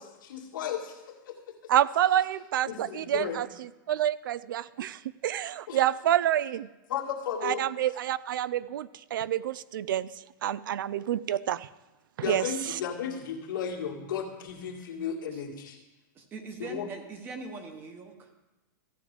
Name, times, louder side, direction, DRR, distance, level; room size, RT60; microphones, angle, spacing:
voice 1, 0.0-1.7 2.6-3.4 5.7-5.8 6.9-7.7 12.2-15.8 16.6-16.9, left 7 dB, 80° left, -1 dB, 1.9 m, -35 dB
voice 2, 1.7-6.7 7.4-10.1 10.4-11.7 12.2-12.5, right 11 dB, 85° right, 19 dB, 0.4 m, -28 dB
voice 3, 16.1-18.3, right 3 dB, 20° right, 5 dB, 0.9 m, -42 dB
14.5 x 7.5 x 3.4 m, 1.1 s
supercardioid pair, 165°, 11 cm